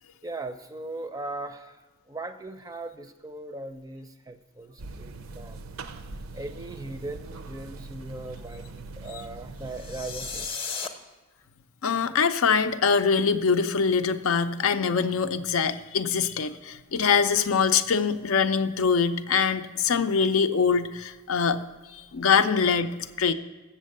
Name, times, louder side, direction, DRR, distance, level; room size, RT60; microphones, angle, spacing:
voice 1, 0.2-1.8 2.1-5.6 6.3-10.5, right 2 dB, 15° right, 9 dB, 0.4 m, -38 dB
sound 1, 4.8-10.5, right 3 dB, 85° right, 0.5 m, -42 dB
sound 2, 9.7-10.9, left 5 dB, 25° left, 0.7 m, -34 dB
voice 2, 11.8-21.6 21.9-23.3, left 6 dB, 85° left, 9 dB, 0.5 m, -23 dB
7.4 x 7.3 x 6.5 m, 1.2 s
head